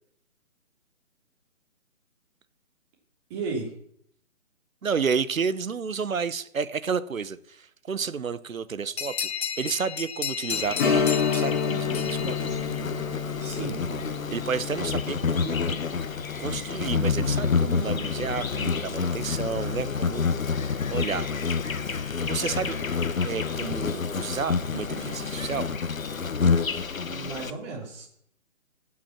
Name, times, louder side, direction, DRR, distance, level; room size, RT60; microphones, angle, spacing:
voice 1, 3.3-3.7 13.4-13.8 26.9-28.1, right 4 dB, 20° right, 3.0 m, -34 dB
voice 2, 4.8-12.5 14.3-15.6 16.4-20.3 20.9-21.3 22.2-22.8 23.2-25.7, right 6 dB, 85° right, 1.0 m, -31 dB
sound 1, 9.0-13.2, left 7 dB, 55° left, 0.9 m, -34 dB
Insect, 10.5-27.5, left 5 dB, 85° left, 1.0 m, -28 dB
Strum, 10.8-20.0 20.3-20.4 22.9-23.1 23.6-23.7, left 6 dB, 35° left, 1.9 m, -31 dB
16.5 x 6.2 x 5.8 m
figure-of-eight pair, 150°, 40 cm